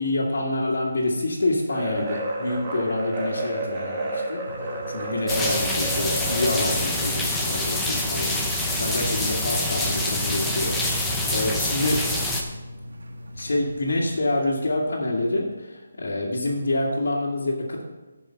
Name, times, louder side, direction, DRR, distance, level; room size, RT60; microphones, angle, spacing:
voice 1, 0.0-4.4 4.9-8.4 8.8-12.2 13.4-17.8, left 2 dB, 65° left, -6 dB, 1.9 m, -27 dB
sound 1, 1.7-7.1, right 1 dB, 15° right, 1.0 m, -31 dB
sound 2, 4.5-14.2, left 1 dB, 90° right, 1.4 m, -40 dB
sound 3, 5.3-12.4, left 1 dB, 5° left, 0.6 m, -26 dB
11.0 x 5.4 x 5.8 m, 1.2 s
hypercardioid pair, 175°, 0 cm